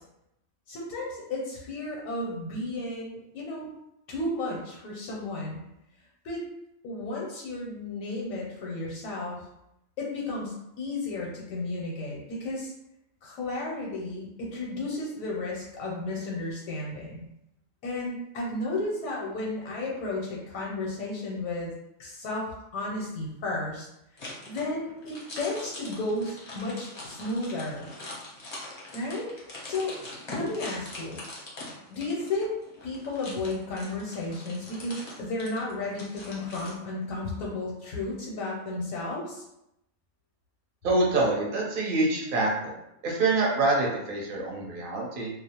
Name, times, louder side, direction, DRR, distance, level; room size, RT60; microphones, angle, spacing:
voice 1, 0.7-3.7 4.1-5.6 6.2-6.4 6.8-9.4 10.0-12.7 13.2-17.3 17.8-21.7 22.0-22.5 22.7-23.9 24.5-27.9 28.9-29.3 29.6-29.9 30.3-31.2 31.9-39.4, left 2 dB, 85° left, -3 dB, 1.0 m, -33 dB
sound 1, 24.2-36.8, left 1 dB, 40° left, 0.6 m, -42 dB
voice 2, 40.8-42.8 43.0-45.3, right 2 dB, 50° right, -2 dB, 0.7 m, -26 dB
2.3 x 2.0 x 2.8 m, 0.85 s
omnidirectional pair, 1.4 m